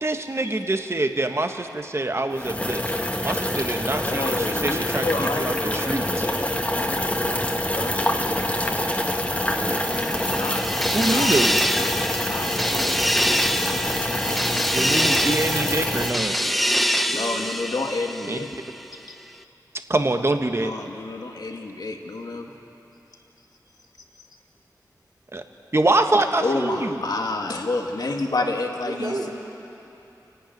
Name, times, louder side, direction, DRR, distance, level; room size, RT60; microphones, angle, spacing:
voice 1, 0.0-2.8 3.2-6.3 10.9-11.6 14.7-16.4 18.3-18.4 19.9-20.7 25.3-25.4 25.7-27.0, right 2 dB, 40° right, 6 dB, 1.5 m, -25 dB
sound 1, 2.3-16.1, left 1 dB, 20° left, 1.9 m, -26 dB
voice 2, 4.0-8.0 10.4-10.6 11.1-13.9 16.4-16.6 17.1-18.5 20.6-22.5 24.2-24.3 26.4-29.3, left 2 dB, 70° left, 2 dB, 2.0 m, -30 dB
voice 3, 9.5-10.4 17.1-17.5 22.2-22.4 28.8-29.3, right 2 dB, 60° right, -4 dB, 3.0 m, -34 dB
sound 2, 9.6-18.7, equal, ahead, 0.7 m, -25 dB
29.0 x 11.5 x 9.3 m, 2.9 s
wide cardioid pair, 60°, 7 cm